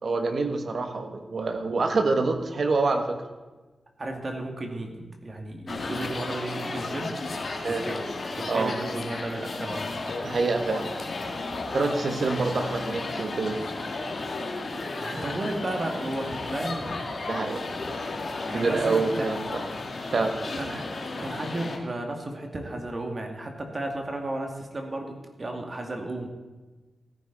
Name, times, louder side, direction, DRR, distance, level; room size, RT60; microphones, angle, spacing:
voice 1, 0.0-3.2 7.6-7.8 8.5-8.7 10.2-10.9 11.7-13.6 17.3-17.6 18.5-19.7 20.1-20.4, right 3 dB, 65° right, 6 dB, 1.5 m, -26 dB
voice 2, 4.0-7.2 7.7-8.0 8.4-9.9 15.0-17.0 18.5-19.3 20.5-20.9 21.2-25.1 25.4-26.3, right 1 dB, 40° right, 2 dB, 2.3 m, -33 dB
sound 1, 5.7-21.8, left 3 dB, 60° left, 1.9 m, -33 dB
16.5 x 10.5 x 4.2 m, 1.2 s
cardioid pair, 60°, 0 cm